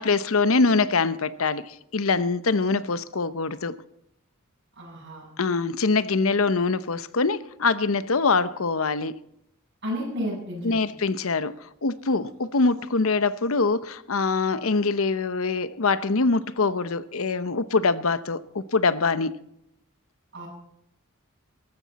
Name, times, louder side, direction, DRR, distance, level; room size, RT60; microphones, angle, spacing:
voice 1, 0.0-3.8 5.4-9.1 10.6-19.3, left 4 dB, 75° left, 0.8 m, -24 dB
voice 2, 4.8-5.3 9.8-10.8 20.3-20.5, equal, 55° right, 7.9 m, -32 dB
19.0 x 15.0 x 4.2 m
head